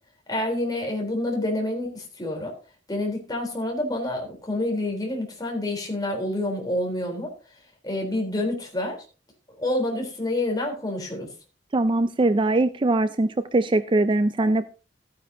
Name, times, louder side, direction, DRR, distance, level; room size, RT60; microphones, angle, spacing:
voice 1, 0.3-2.5 2.9-7.3 7.8-9.0 9.6-11.3, left 1 dB, 20° left, 1 dB, 3.8 m, -28 dB
voice 2, 11.7-14.7, right 2 dB, 25° right, 12 dB, 0.5 m, -21 dB
14.5 x 9.4 x 2.8 m, 0.33 s
head